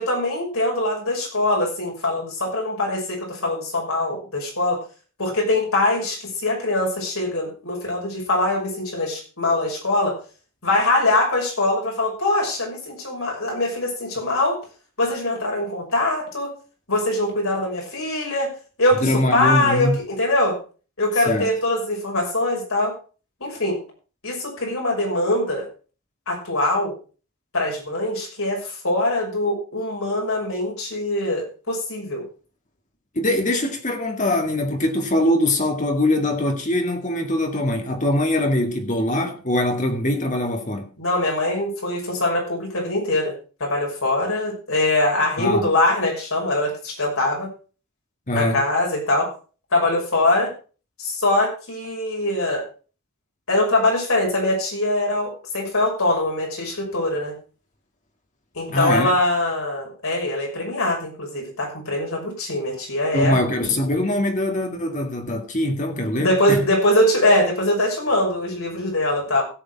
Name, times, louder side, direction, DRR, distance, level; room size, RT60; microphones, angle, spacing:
voice 1, 0.0-4.8 5.2-10.1 10.6-14.6 15.0-16.5 16.9-18.5 18.8-20.6 21.0-22.9 23.4-23.8 24.2-25.7 26.3-26.9 27.5-32.2 41.0-43.3 43.6-47.5 48.4-49.3 49.7-50.5 51.0-52.6 53.5-57.3 58.5-63.4 66.2-69.4, left 1 dB, 70° left, 6.1 m, -22 dB
voice 2, 19.0-20.0 21.3-21.5 33.2-40.9 45.4-45.7 48.3-48.6 58.7-59.1 63.1-66.6, left 1 dB, 35° left, 2.2 m, -22 dB
16.5 x 7.0 x 4.7 m
head